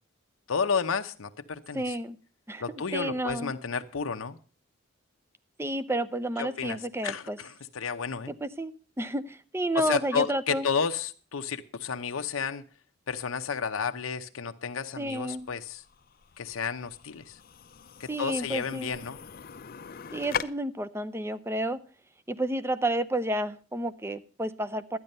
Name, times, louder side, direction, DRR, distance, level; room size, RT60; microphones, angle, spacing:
voice 1, 0.5-2.0 2.6-4.4 6.4-8.3 9.7-12.6 13.1-15.8 16.4-17.4 18.0-19.2, left 6 dB, 90° left, 7 dB, 0.7 m, -31 dB
voice 2, 1.7-2.2 2.5-3.5 5.6-7.4 8.4-10.7 15.0-15.5 18.1-18.9 20.1-21.8 22.3-25.0, right 1 dB, 10° right, 14 dB, 0.5 m, -31 dB
sound 1, 15.0-20.4, left 7 dB, 45° left, 0.5 m, -40 dB
12.5 x 9.8 x 5.4 m, 0.39 s
head